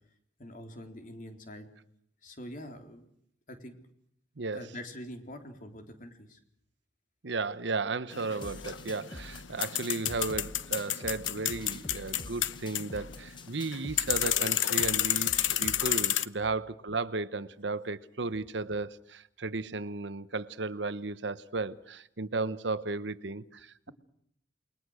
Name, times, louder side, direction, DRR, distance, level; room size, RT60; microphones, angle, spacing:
voice 1, 0.4-1.7 2.2-3.0 3.5-3.7 4.5-6.4, equal, 45° left, 5 dB, 3.7 m, -44 dB
voice 2, 4.4-4.7 7.2-23.9, right 3 dB, 70° right, 14 dB, 1.0 m, -34 dB
sound 1, 8.1-16.3, left 12 dB, 90° left, 1.0 m, -31 dB
sound 2, 8.4-16.0, left 2 dB, 25° left, 1.1 m, -46 dB
29.0 x 21.5 x 6.4 m, 0.71 s
head